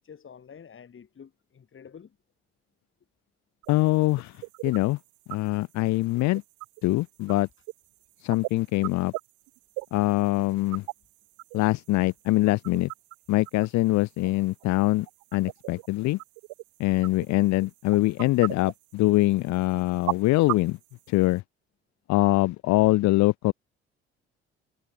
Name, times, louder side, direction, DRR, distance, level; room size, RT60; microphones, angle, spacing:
voice 1, 0.0-2.2, left 7 dB, 40° left, 6.5 m, -48 dB
sound 1, 3.6-21.4, right 26 dB, 65° right, 3.9 m, -40 dB
voice 2, 3.7-4.3 4.6-5.0 5.3-6.4 6.8-7.5 8.2-9.1 9.9-10.8 11.5-12.9 13.3-15.1 15.3-16.2 16.8-20.8 21.1-21.4 22.1-23.5, left 19 dB, 60° left, 2.0 m, -23 dB
figure-of-eight pair, 50°, 31 cm